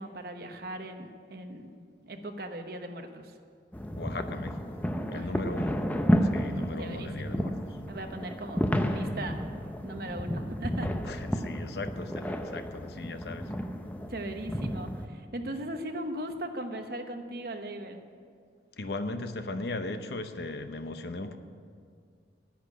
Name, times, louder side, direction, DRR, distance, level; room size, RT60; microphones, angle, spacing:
voice 1, 0.0-3.3 5.1-5.4 6.8-7.4 7.9-9.4 9.8-10.9 14.1-18.0, right 1 dB, 55° right, 5 dB, 1.0 m, -38 dB
sound 1, 3.7-15.1, equal, 10° left, 0.5 m, -31 dB
voice 2, 4.0-4.8 5.1-5.7 6.2-7.6 11.0-13.5 18.8-21.4, left 2 dB, 65° left, 8 dB, 0.8 m, -37 dB
10.0 x 8.4 x 9.4 m, 2.1 s
head